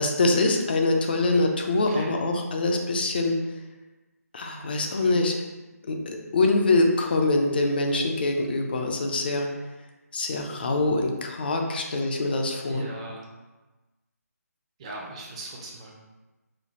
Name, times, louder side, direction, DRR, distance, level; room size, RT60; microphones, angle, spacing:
voice 1, 0.0-3.4 4.3-5.4 5.9-9.5 10.1-12.9, left 2 dB, 35° left, 3 dB, 0.5 m, -24 dB
voice 2, 11.7-12.0 12.6-13.3 14.8-15.9, right 2 dB, 20° right, -2 dB, 0.6 m, -40 dB
5.0 x 2.2 x 2.7 m, 1.1 s
figure-of-eight pair, 155°, 9 cm